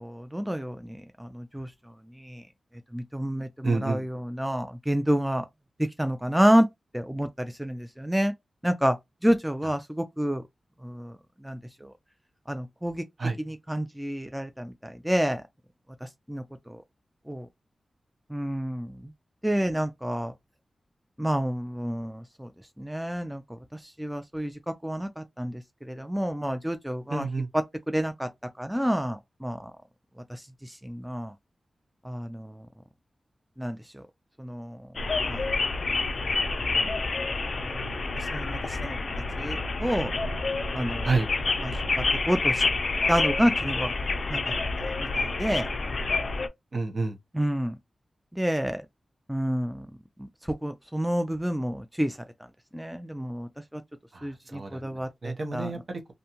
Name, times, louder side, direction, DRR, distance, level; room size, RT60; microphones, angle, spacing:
voice 1, 0.0-1.7 2.3-2.4 2.9-5.4 6.0-6.7 6.9-8.3 8.6-9.0 9.2-10.4 10.8-11.1 11.4-11.6 12.5-13.0 13.5-15.4 16.3-16.4 16.7-16.8 17.3-17.5 18.3-18.9 19.4-20.3 21.2-22.5 22.8-23.4 24.0-24.5 24.8-25.6 25.9-27.3 27.9-28.3 28.6-29.7 30.8-31.3 32.0-32.6 33.6-33.8 34.4-34.8 35.3-35.4 36.7-37.0 37.6-37.8 38.3-39.0 39.4-40.1 40.7-41.1 41.6-41.8 42.3-42.6 43.1-43.9 44.3-45.7 47.3-47.7 48.3-48.8 49.3-49.9 50.6-52.2 52.7-53.8 54.2-55.7, equal, 5° right, 0.4 m, -29 dB
voice 2, 3.6-4.0 9.6-9.7 13.2-13.4 27.1-27.5 41.0-41.3 46.7-47.2 54.1-56.1, right 3 dB, 55° right, 0.8 m, -29 dB
sound 1, 35.0-46.5, left 3 dB, 60° left, 0.4 m, -28 dB
2.6 x 2.2 x 2.9 m
cardioid pair, 60°, 0 cm